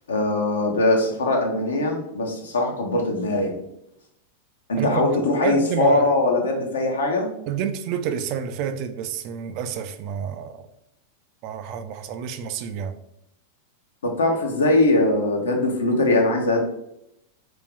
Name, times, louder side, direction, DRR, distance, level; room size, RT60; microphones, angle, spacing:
voice 1, 0.1-3.6 4.7-7.3 14.0-16.6, left 2 dB, 80° left, 0.7 m, -21 dB
voice 2, 4.8-6.1 7.5-10.7 11.4-12.9, right 8 dB, 50° right, 0.3 m, -29 dB
2.5 x 2.3 x 3.6 m
hypercardioid pair, 95°, 0 cm